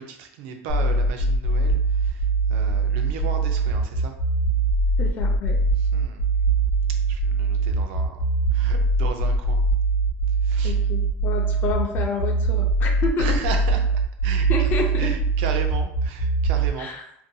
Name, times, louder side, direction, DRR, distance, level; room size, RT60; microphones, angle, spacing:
voice 1, 0.0-4.2 5.8-6.2 7.1-9.6 10.4-10.8 13.2-13.8 14.2-14.5 15.0-16.9, right 6 dB, 75° right, 5 dB, 0.4 m, -35 dB
sound 1, 0.7-16.7, right 3 dB, 85° left, 0.8 m, -22 dB
voice 2, 5.0-5.6 10.6-13.4 14.5-15.1 16.8-17.1, left 4 dB, 35° left, 2 dB, 0.5 m, -29 dB
2.6 x 2.2 x 2.7 m, 0.73 s
cardioid pair, 165°, 6 cm